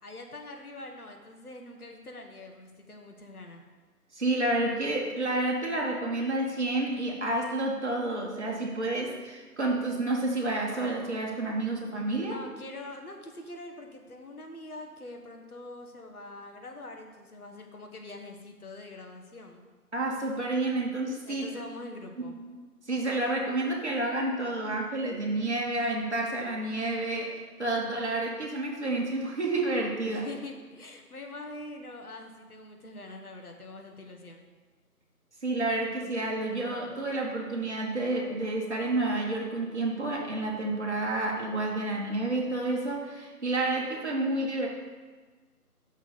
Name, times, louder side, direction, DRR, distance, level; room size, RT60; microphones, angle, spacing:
voice 1, 0.0-3.6 12.2-19.6 21.2-22.4 30.0-34.4, left 2 dB, 65° left, 3 dB, 1.4 m, -44 dB
voice 2, 4.1-12.3 19.9-21.5 22.3-22.4 22.9-30.2 35.4-44.7, right 2 dB, 45° right, -2 dB, 1.6 m, -30 dB
6.4 x 5.2 x 6.7 m, 1.4 s
figure-of-eight pair, 170°, 47 cm